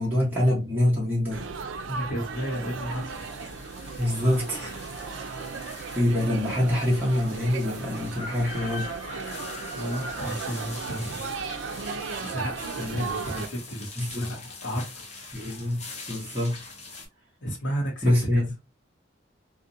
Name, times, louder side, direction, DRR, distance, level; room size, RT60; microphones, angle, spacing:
voice 1, 0.0-1.4 4.0-4.8 5.6-8.9 12.8-13.1 14.0-14.4 15.3-16.6 18.0-18.5, left 1 dB, 10° right, 1.0 m, -25 dB
Laughter / Chatter / Crowd, 1.3-13.5, right 5 dB, 80° right, 0.4 m, -36 dB
voice 2, 1.9-3.3 9.7-11.3 12.2-15.0 17.4-18.4, equal, 75° left, 0.8 m, -33 dB
sound 1, 2.6-17.1, left 3 dB, 35° left, 0.7 m, -43 dB
2.6 x 2.1 x 2.6 m
head